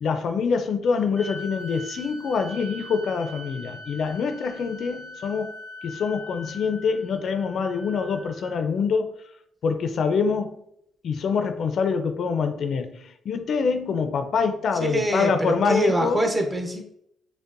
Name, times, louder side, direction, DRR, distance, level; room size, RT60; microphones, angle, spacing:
voice 1, 0.0-5.5 5.8-9.1 9.6-10.6 11.0-16.2, left 5 dB, 60° left, 7 dB, 0.4 m, -25 dB
sound 1, 1.1-8.6, left 1 dB, 50° right, 0.9 m, -42 dB
voice 2, 14.7-16.8, right 1 dB, 25° right, 2 dB, 0.8 m, -24 dB
5.2 x 2.1 x 2.5 m, 0.73 s
cardioid pair, 90°, 0 cm